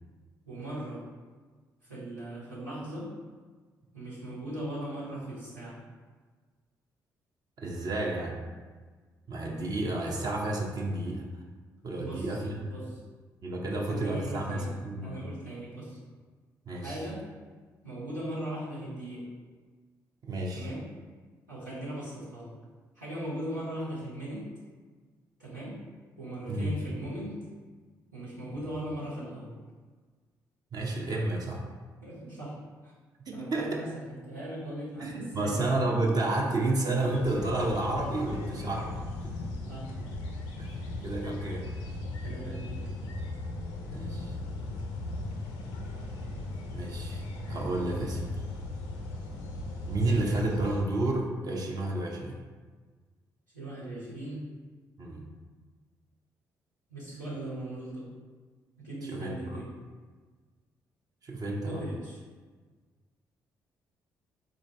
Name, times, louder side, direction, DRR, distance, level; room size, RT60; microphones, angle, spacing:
voice 1, 0.4-1.1 1.9-3.1 3.9-5.8 12.0-12.4 12.6-12.9 13.9-14.7 15.0-16.0 16.8-17.2 17.8-19.3 20.5-20.9 21.5-22.5 22.9-24.5 25.4-25.8 26.2-27.4 28.1-29.5 32.0-32.6 32.8-32.9 33.3-35.6 39.7-39.9 42.2-43.0 53.5-54.5 56.9-58.1 58.8-59.7 61.6-62.2, right 1 dB, 85° right, -11 dB, 1.1 m, -39 dB
voice 2, 7.6-8.4 9.3-11.2 11.8-12.6 13.4-15.1 16.7-17.0 20.2-20.7 26.5-26.7 30.7-31.6 33.3-33.7 35.0-39.0 39.2-39.4 40.6-40.7 41.0-41.7 43.9-44.3 46.7-48.4 49.9-52.4 55.0-55.3 59.0-59.6 61.2-61.8, right 2 dB, 40° right, -2 dB, 0.8 m, -31 dB
sound 1, 37.1-50.8, left 2 dB, 70° left, 0.4 m, -37 dB
3.9 x 2.6 x 3.4 m, 1.5 s
figure-of-eight pair, 40°, 10 cm